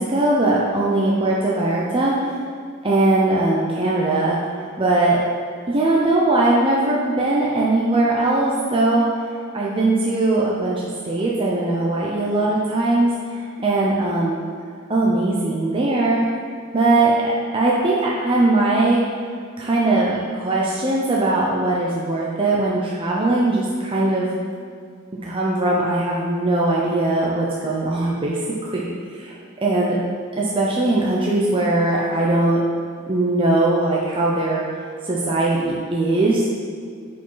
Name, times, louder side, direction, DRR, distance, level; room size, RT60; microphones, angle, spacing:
voice 1, 0.0-2.3 2.8-5.2 5.7-9.3 9.5-14.4 14.9-16.2 16.7-19.0 19.6-24.3 25.1-28.9 29.1-30.0 30.4-32.6 33.1-34.6 35.1-36.5, right 2 dB, 25° right, -5 dB, 0.7 m, -20 dB
8.5 x 5.1 x 3.9 m, 2.2 s
head